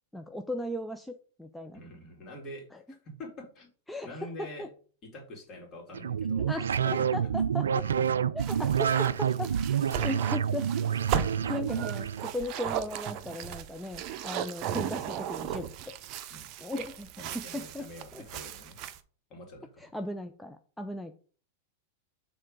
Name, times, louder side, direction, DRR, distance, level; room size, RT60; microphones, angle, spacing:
voice 1, 0.1-1.8 2.7-2.8 3.9-4.7 6.5-7.8 8.3-9.5 10.0-10.7 11.4-15.9 16.6-17.1 17.3-18.2 19.8-21.1, left 1 dB, 5° left, 6 dB, 0.5 m, -37 dB
voice 2, 1.7-3.7 4.0-4.7 5.0-6.5 6.8-7.1 7.8-8.2 11.0-11.2 16.3-16.5 17.2-18.8 19.3-19.9, left 1 dB, 35° left, 0 dB, 2.8 m, -45 dB
sound 1, 5.9-12.3, right 8 dB, 75° right, 0.3 m, -28 dB
sound 2, 8.4-19.0, right 9 dB, 45° right, 0.7 m, -36 dB
6.5 x 3.7 x 5.2 m, 0.41 s
figure-of-eight pair, 95°, 0 cm